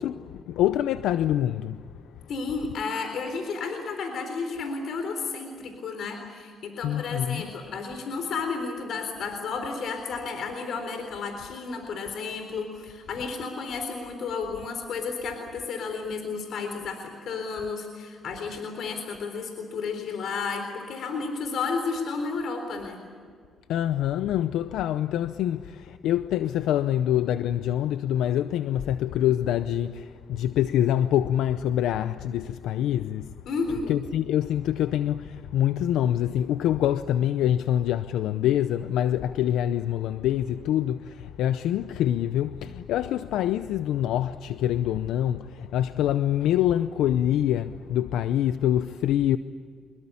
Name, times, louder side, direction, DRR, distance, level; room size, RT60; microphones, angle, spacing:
voice 1, 0.0-1.8 6.8-7.4 23.7-33.3 33.9-49.4, left 11 dB, 85° left, 0.6 m, -25 dB
voice 2, 2.3-23.0 33.5-33.9, left 4 dB, 70° left, 3.9 m, -32 dB
25.5 x 22.0 x 8.5 m
cardioid pair, 90°, 0 cm